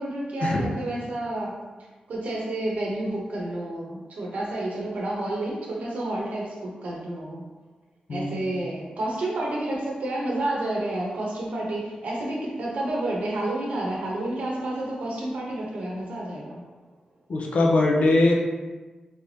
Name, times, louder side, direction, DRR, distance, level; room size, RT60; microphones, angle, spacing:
voice 1, 0.0-1.6 2.1-7.4 8.1-16.6, right 1 dB, 75° right, -3 dB, 0.9 m, -30 dB
voice 2, 8.1-8.4 17.3-18.3, left 2 dB, 60° left, -1 dB, 0.6 m, -21 dB
3.4 x 3.3 x 2.7 m, 1.2 s
wide cardioid pair, 135°, 3 cm